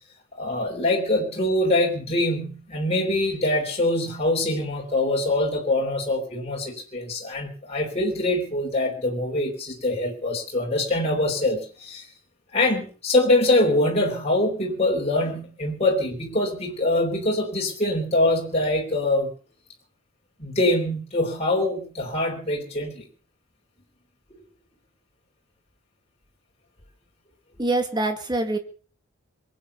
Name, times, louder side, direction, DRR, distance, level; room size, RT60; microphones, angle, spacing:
voice 1, 0.3-12.1 12.5-19.3 20.4-23.0, left 1 dB, 30° left, -1 dB, 3.4 m, -24 dB
voice 2, 27.6-28.6, right 2 dB, 20° right, 7 dB, 2.0 m, -24 dB
22.0 x 9.1 x 6.8 m, 0.40 s
head